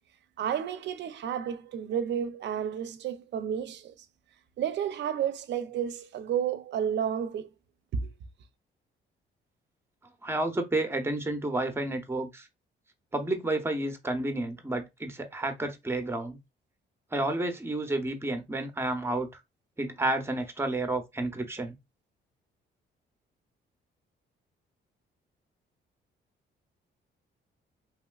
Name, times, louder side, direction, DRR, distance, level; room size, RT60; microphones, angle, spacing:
voice 1, 0.4-4.1 4.6-7.5 7.9-8.1, right 8 dB, 65° right, 0.5 m, -31 dB
voice 2, 10.2-12.5 13.1-16.4 17.1-19.3 19.8-21.8, right 2 dB, 10° right, 0.7 m, -30 dB
3.0 x 3.0 x 2.3 m
cardioid pair, 90°, 20 cm